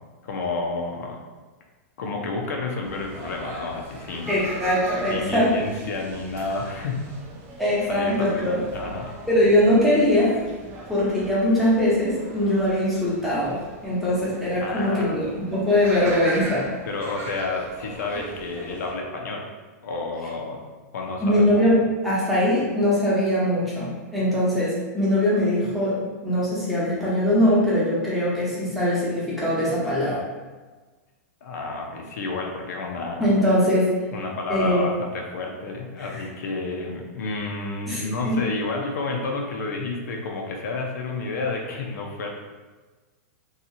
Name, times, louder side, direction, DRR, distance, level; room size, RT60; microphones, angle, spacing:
voice 1, 0.2-1.2 2.0-4.3 5.1-7.0 7.9-9.1 14.6-15.2 16.9-19.5 19.8-20.6 20.9-21.5 31.4-33.3 34.1-42.3, left 3 dB, 80° left, 0 dB, 0.6 m, -30 dB
sound 1, 2.8-18.9, right 1 dB, 25° right, 0.4 m, -40 dB
voice 2, 4.3-5.5 7.6-8.6 9.3-10.4 10.9-15.2 15.5-16.6 21.2-30.2 33.2-33.9 34.5-34.8 36.0-36.2 37.9-38.4, left 1 dB, ahead, -9 dB, 0.8 m, -21 dB
2.7 x 2.4 x 2.7 m, 1.3 s
supercardioid pair, 155°, 9 cm